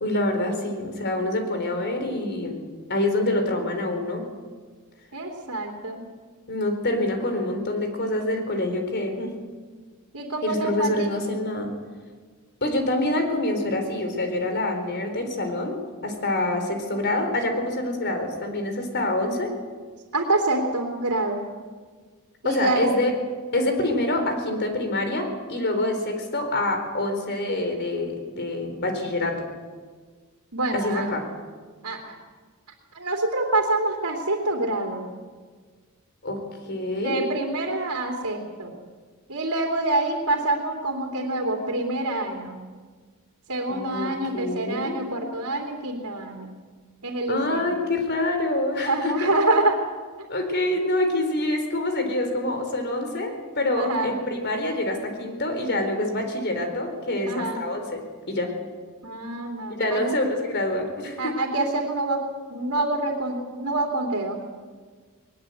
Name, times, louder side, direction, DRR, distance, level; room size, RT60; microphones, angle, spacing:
voice 1, 0.0-2.6 2.9-4.2 6.5-9.3 10.4-11.7 12.6-15.7 16.0-19.6 22.4-23.1 23.5-29.4 30.7-31.3 36.2-36.4 36.7-37.3 43.7-45.0 47.3-49.3 50.3-58.0 58.3-58.5 59.8-61.3, left 1 dB, 50° left, 5 dB, 4.1 m, -26 dB
voice 2, 5.1-6.0 10.1-11.1 20.1-21.5 22.4-22.9 30.5-31.1 31.8-32.2 32.9-35.1 37.0-38.7 39.3-42.6 43.5-46.5 47.0-47.7 48.8-49.8 53.8-54.1 57.3-57.6 59.0-60.0 61.2-62.2 62.5-64.4, right 2 dB, 90° right, 0 dB, 3.2 m, -26 dB
20.5 x 20.5 x 8.0 m, 1.5 s
head